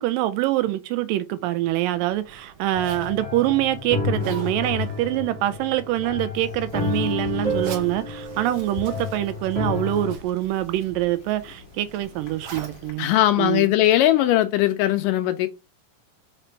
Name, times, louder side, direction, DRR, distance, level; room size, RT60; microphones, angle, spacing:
voice 1, 0.0-13.1 13.4-13.7, right 14 dB, 80° right, 2.1 m, -25 dB
Zipper (clothing), 1.5-14.2, right 4 dB, 60° right, 1.6 m, -45 dB
sound 1, 2.7-10.1, left 3 dB, 35° right, 0.9 m, -30 dB
sound 2, 6.3-12.9, left 6 dB, 55° left, 1.2 m, -45 dB
voice 2, 13.0-15.5, left 14 dB, 80° left, 2.0 m, -19 dB
5.0 x 4.4 x 4.4 m
omnidirectional pair, 4.1 m